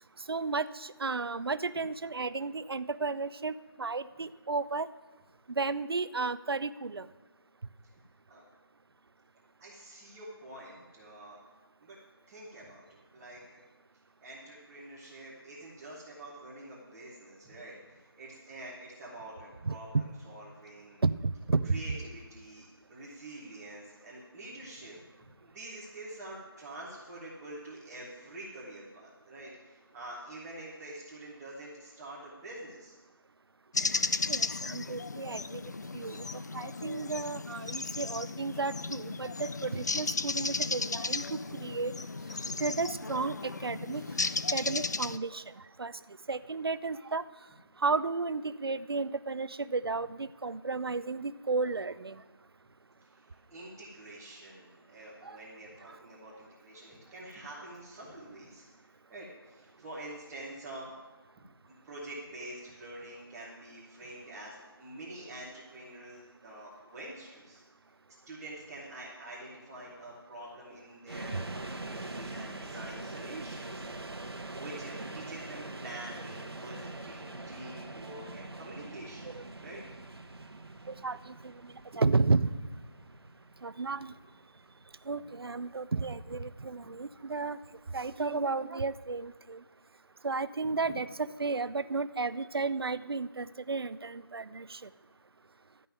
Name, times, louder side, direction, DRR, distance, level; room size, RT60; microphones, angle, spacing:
voice 1, 0.3-4.9 5.5-7.1 19.7-19.8 21.0-21.1 21.5-21.7 34.3-35.6 35.9-36.3 36.5-41.9 42.6-44.1 44.5-45.4 45.8-45.9 46.3-47.2 47.8-52.2 55.2-55.4 71.3-71.4 79.3-79.4 80.9-82.5 83.6-84.1 85.1-87.6 87.9-89.6 90.2-94.9, right 4 dB, 70° right, 14 dB, 0.6 m, -33 dB
voice 2, 9.6-11.4 11.8-12.0 12.3-13.6 14.2-21.0 21.6-33.0 40.5-40.6 53.0-60.9 61.4-67.6 68.3-73.9 74.3-79.3 79.6-79.8 81.9-82.0 90.8-90.9, right 1 dB, 5° right, -8 dB, 0.8 m, -46 dB
sound 1, 33.7-45.2, left 3 dB, 45° left, 0.4 m, -35 dB
sound 2, 71.1-88.1, right 2 dB, 90° right, 1.2 m, -44 dB
12.5 x 5.4 x 9.0 m, 1.2 s
figure-of-eight pair, 170°, 13 cm